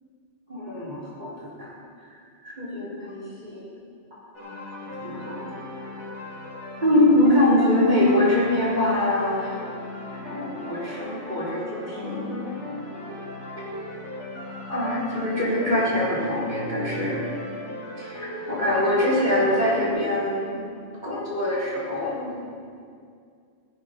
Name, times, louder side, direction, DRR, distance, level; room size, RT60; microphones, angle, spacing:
voice 1, 0.5-1.7 2.4-3.7 4.2-4.5 5.0-5.4 6.8-9.6 10.1-12.4 14.7-17.2 18.0-20.6 21.0-22.3, left 1 dB, 40° right, -7 dB, 4.1 m, -24 dB
sound 1, 4.3-19.9, left 1 dB, 75° left, 3.6 m, -37 dB
17.0 x 11.0 x 5.3 m, 2.3 s
omnidirectional pair, 1.2 m